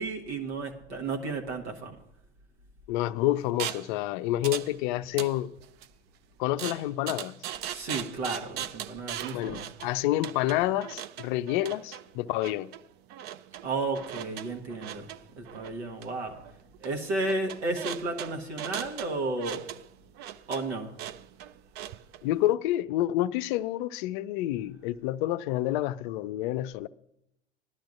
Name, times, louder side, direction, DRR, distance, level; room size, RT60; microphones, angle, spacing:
voice 1, 0.0-1.9 7.7-9.6 13.6-15.1 15.4-16.4 16.8-19.7 20.5-21.0, right 2 dB, 70° right, 1.5 m, -33 dB
voice 2, 2.9-5.5 6.4-7.4 9.3-12.7 22.2-26.9, left 14 dB, 45° left, 0.5 m, -28 dB
sound 1, 3.6-3.9 4.4-4.7 5.0-5.9 6.6-22.2, right 11 dB, 30° right, 0.4 m, -39 dB
18.0 x 11.5 x 2.5 m
figure-of-eight pair, 80°, 34 cm